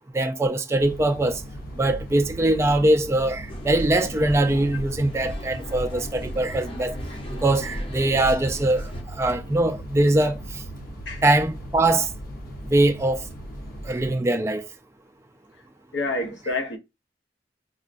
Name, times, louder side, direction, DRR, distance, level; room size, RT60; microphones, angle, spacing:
voice 1, 0.1-1.4 1.7-7.0 7.3-10.6 11.2-12.1 12.7-13.2 13.8-14.7, right 1 dB, 15° right, 0.3 m, -22 dB
sound 1, 0.8-14.1, right 1 dB, 55° left, 0.9 m, -38 dB
sound 2, 3.5-9.0, equal, 30° left, 0.7 m, -35 dB
voice 2, 15.9-16.8, left 2 dB, 85° left, 0.8 m, -28 dB
5.3 x 2.2 x 2.5 m
head